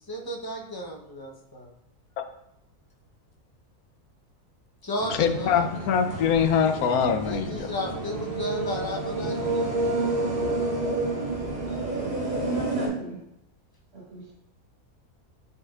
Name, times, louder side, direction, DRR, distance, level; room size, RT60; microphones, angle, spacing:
voice 1, 0.1-1.7 4.8-5.7 7.2-9.7, left 1 dB, 20° left, -1 dB, 0.7 m, -34 dB
sound 1, 5.0-12.9, right 2 dB, 40° right, 1.8 m, -29 dB
voice 2, 5.1-7.7, left 7 dB, 75° left, 7 dB, 1.1 m, -23 dB
voice 3, 12.0-13.2 13.9-14.3, right 4 dB, 80° right, -5 dB, 2.3 m, -35 dB
9.4 x 4.3 x 2.4 m, 0.81 s
omnidirectional pair, 1.6 m